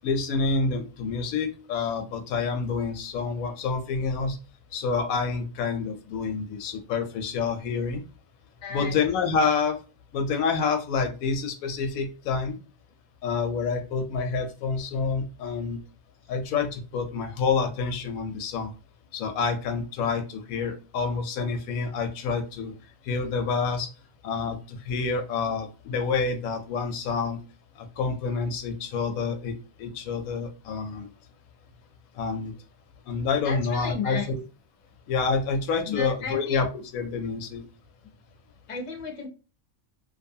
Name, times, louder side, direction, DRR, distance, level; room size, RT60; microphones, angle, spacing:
voice 1, 0.0-4.4 4.7-8.0 8.7-9.8 10.1-12.6 13.2-15.8 16.3-18.7 19.1-22.7 23.1-23.9 24.2-27.4 27.8-29.5 29.8-31.1 32.2-32.5 33.1-34.4 35.1-36.7 36.9-37.6, left 5 dB, 90° left, 6 dB, 1.0 m, -28 dB
voice 2, 8.6-9.0 33.4-34.3 35.9-36.6 38.7-39.3, left 5 dB, 35° left, 1 dB, 0.5 m, -33 dB
2.6 x 2.3 x 2.6 m, 0.33 s
omnidirectional pair, 1.4 m